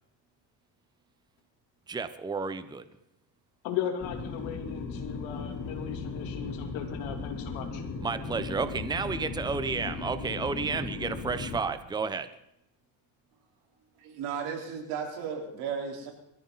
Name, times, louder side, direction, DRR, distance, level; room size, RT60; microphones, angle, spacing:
voice 1, 1.9-2.8 8.0-12.3, right 4 dB, 10° right, 11 dB, 0.7 m, -31 dB
voice 2, 3.6-7.8, left 9 dB, 80° left, 4 dB, 3.0 m, -37 dB
sound 1, 4.0-11.6, left 4 dB, 40° left, 3.6 m, -37 dB
voice 3, 14.0-16.1, right 6 dB, 85° right, 0 dB, 4.3 m, -35 dB
22.5 x 14.5 x 4.0 m, 0.85 s
cardioid pair, 130°, 46 cm